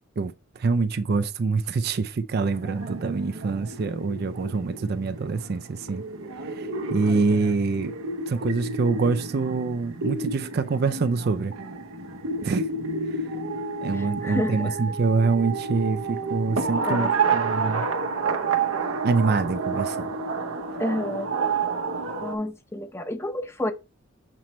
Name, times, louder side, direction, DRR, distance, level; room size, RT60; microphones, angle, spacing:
voice 1, 0.2-6.0 6.4-7.9 8.3-11.5 12.4-12.6 13.8-17.8 19.0-20.1, right 4 dB, 50° right, 0.4 m, -25 dB
sound 1, 2.5-22.4, right 4 dB, 85° right, 0.9 m, -30 dB
voice 2, 13.9-14.8 16.8-17.1 20.8-21.3 22.2-23.7, left 1 dB, 10° left, 0.7 m, -30 dB
7.3 x 3.1 x 4.2 m
head